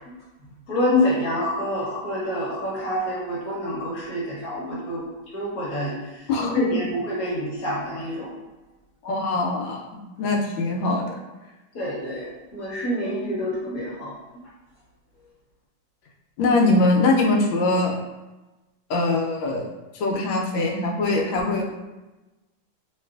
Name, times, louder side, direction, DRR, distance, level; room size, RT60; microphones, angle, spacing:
voice 1, 0.7-5.0 5.3-6.2 6.5-8.3 11.7-14.1, left 1 dB, 55° left, -6 dB, 1.2 m, -27 dB
voice 2, 6.3-6.9 9.0-9.8 10.2-11.2 16.4-17.9 18.9-19.7 19.9-21.8, left 2 dB, 80° left, 1 dB, 1.3 m, -22 dB
3.1 x 3.0 x 2.3 m, 1.1 s
omnidirectional pair, 2.2 m